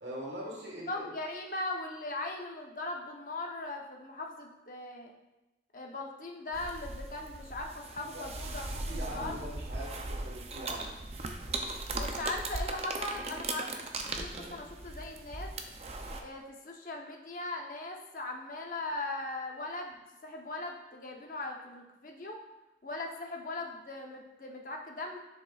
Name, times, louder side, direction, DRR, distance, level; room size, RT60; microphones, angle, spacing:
voice 1, 0.0-1.0 8.1-8.2 8.6-10.9, right 1 dB, 90° right, -3 dB, 1.6 m, -42 dB
voice 2, 0.9-5.1 5.7-9.4 11.9-13.7 14.0-15.5 16.2-19.9 20.2-22.4 22.8-25.2, left 2 dB, 50° left, 1 dB, 0.9 m, -39 dB
sound 1, 6.5-16.2, right 2 dB, 35° right, 0.5 m, -38 dB
10.0 x 5.3 x 2.4 m, 0.97 s
head